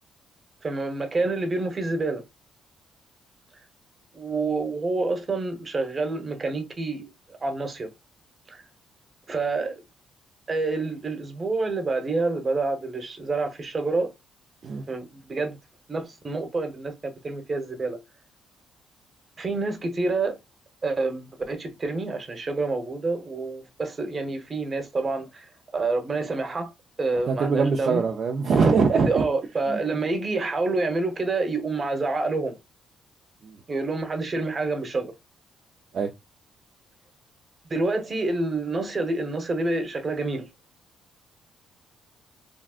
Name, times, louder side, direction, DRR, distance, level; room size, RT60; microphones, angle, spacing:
voice 1, 0.6-2.2 4.1-7.9 8.5-8.6 9.3-9.8 10.5-14.1 14.9-15.6 15.9-17.0 17.2-18.0 19.4-20.4 20.8-26.7 27.0-28.1 28.9-32.6 33.7-35.1 37.7-40.5, right 3 dB, 35° right, 0.9 m, -28 dB
voice 2, 27.3-29.2 29.7-29.8 33.4-33.5 35.9-36.1, right 5 dB, 55° right, 0.4 m, -22 dB
3.6 x 2.3 x 2.4 m
cardioid pair, 90°, 0 cm